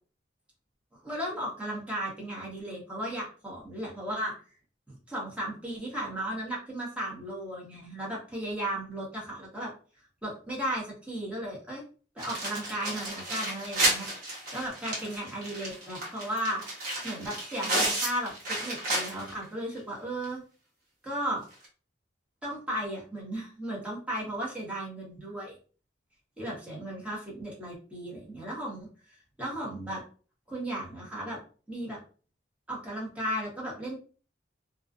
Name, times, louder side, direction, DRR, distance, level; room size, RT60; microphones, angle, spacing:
voice 1, 1.0-4.3 4.9-9.7 10.2-11.8 12.1-16.6 17.0-18.3 18.6-20.4 21.0-21.4 22.4-25.6 26.4-30.0 30.5-31.4 31.7-32.0 32.7-34.0, right 1 dB, 5° right, -5 dB, 0.9 m, -35 dB
sound 1, 12.2-19.4 19.8-19.9 20.2-20.3 21.5-21.7, right 1 dB, 55° right, 1.0 m, -32 dB
2.4 x 2.2 x 2.5 m, 0.39 s
head